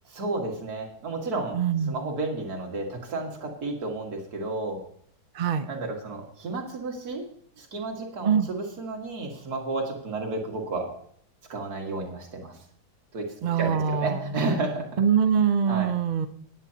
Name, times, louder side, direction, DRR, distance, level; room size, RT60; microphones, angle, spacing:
voice 1, 0.1-1.6 1.9-4.8 5.7-7.3 7.6-10.9 11.5-12.6 13.1-15.0 15.7-15.9, right 2 dB, 65° right, 1 dB, 2.3 m, -32 dB
voice 2, 1.5-1.9 5.3-5.7 8.2-8.5 13.4-14.2 15.0-16.3, right 7 dB, 85° right, 10 dB, 0.4 m, -23 dB
17.5 x 8.9 x 2.8 m, 0.64 s
omnidirectional pair, 1.8 m